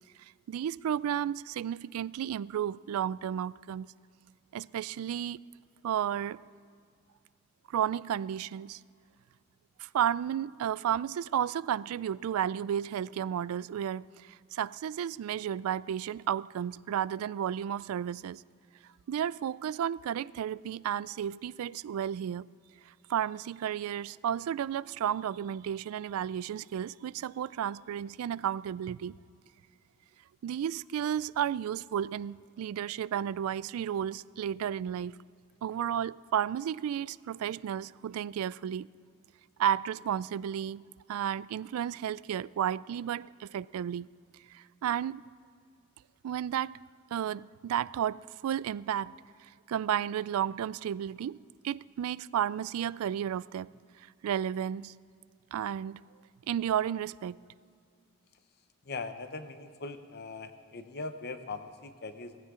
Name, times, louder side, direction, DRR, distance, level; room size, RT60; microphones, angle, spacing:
voice 1, 0.2-3.9 4.5-5.4 5.8-6.4 7.7-8.8 9.8-18.4 19.1-22.5 22.9-29.2 30.4-35.2 35.6-38.9 39.6-44.1 44.5-45.3 46.2-46.8 47.1-49.1 49.4-51.4 51.6-53.7 54.0-54.9 55.5-56.0 56.5-57.4, right 9 dB, 80° right, 0.3 m, -33 dB
voice 2, 58.8-62.4, left 3 dB, 50° left, 0.8 m, -40 dB
19.0 x 15.0 x 3.7 m
head